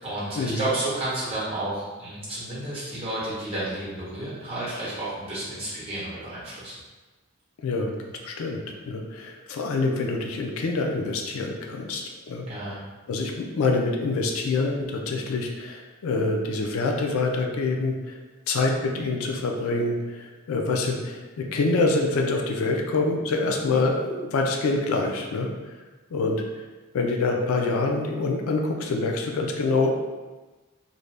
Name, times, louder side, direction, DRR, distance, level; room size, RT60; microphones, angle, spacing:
voice 1, 0.0-6.7 12.5-12.8, right 1 dB, 25° right, -10 dB, 1.0 m, -31 dB
voice 2, 7.6-7.9 8.2-12.5 13.1-18.2 18.5-25.5 26.1-26.4 26.9-29.9, left 3 dB, 75° left, 2 dB, 0.4 m, -26 dB
2.5 x 2.1 x 3.2 m, 1.2 s
head